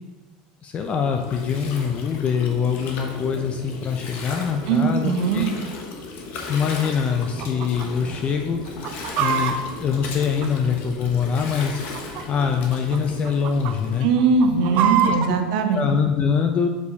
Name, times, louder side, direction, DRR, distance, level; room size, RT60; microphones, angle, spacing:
voice 1, 0.6-5.5 6.5-8.6 9.1-11.8 12.3-14.1 14.7-15.1 15.7-16.7, left 6 dB, 35° left, 5 dB, 0.5 m, -24 dB
Gurgling, 0.7-14.0, left 3 dB, 55° left, 1.1 m, -36 dB
voice 2, 4.7-5.5 14.0-15.9, right 5 dB, 80° right, 5 dB, 1.0 m, -20 dB
Chicken rooster, 7.4-7.9 8.1-8.2 8.7-10.9 11.7-12.4 12.7-13.0 13.3-13.7 14.2-15.3, right 8 dB, 50° right, 0.6 m, -25 dB
7.0 x 4.7 x 4.1 m, 1.2 s
supercardioid pair, 125°, 4 cm